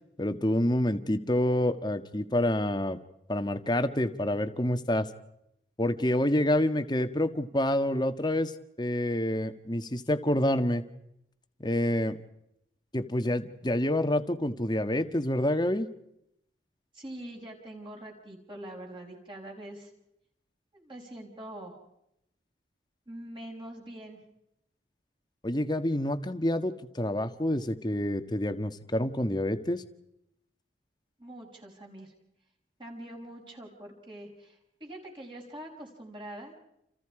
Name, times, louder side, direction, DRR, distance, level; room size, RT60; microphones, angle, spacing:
voice 1, 0.2-3.0 3.3-5.1 5.8-8.5 8.8-10.8 11.6-12.2 12.9-15.9 25.4-29.8, left 1 dB, 25° left, 9 dB, 1.5 m, -27 dB
voice 2, 16.9-19.9 20.7-21.7 23.1-24.2 31.2-32.1 32.8-36.5, right 1 dB, 30° right, 0 dB, 6.0 m, -44 dB
30.0 x 29.0 x 4.9 m, 0.80 s
head